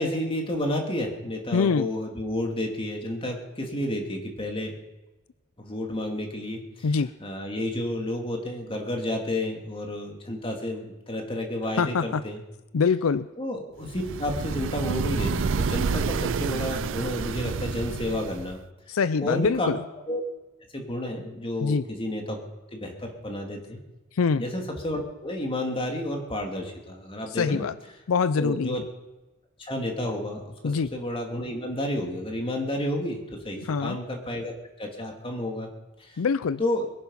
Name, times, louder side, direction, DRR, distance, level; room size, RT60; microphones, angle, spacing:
voice 1, 0.0-4.7 5.6-6.9 7.2-12.4 13.4-18.6 19.2-19.7 20.1-20.2 20.7-22.4 22.7-23.8 24.4-27.6 28.3-28.8 29.6-30.5 30.9-34.5 34.8-35.7 36.0-36.2 36.6-36.8, left 1 dB, 25° left, 2 dB, 2.9 m, -31 dB
voice 2, 1.5-1.9 6.8-7.1 11.8-12.2 12.7-13.3 18.9-19.8 21.6-21.9 24.1-24.4 27.3-27.7 28.1-28.8 30.6-30.9 33.6-34.0 36.2-36.6, left 5 dB, 80° left, 16 dB, 0.5 m, -24 dB
sound 1, 13.9-18.6, right 4 dB, 65° right, 0.5 m, -29 dB
22.0 x 10.5 x 5.8 m, 1.1 s
head